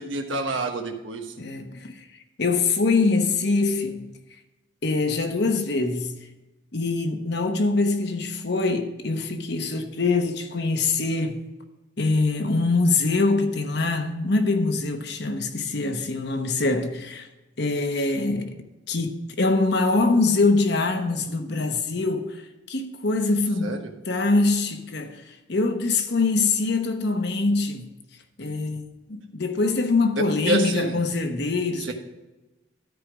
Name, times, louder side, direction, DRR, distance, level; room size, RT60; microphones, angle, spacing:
voice 1, 0.0-1.3 23.6-23.9 30.2-31.1 31.8-31.9, right 2 dB, 75° right, 1.2 m, -28 dB
voice 2, 1.4-2.0 2.4-4.1 4.8-6.1 6.7-11.4 12.0-17.3 17.6-18.6 18.9-27.9 28.4-31.9, left 3 dB, 55° left, 1.0 m, -24 dB
13.0 x 5.0 x 5.0 m
head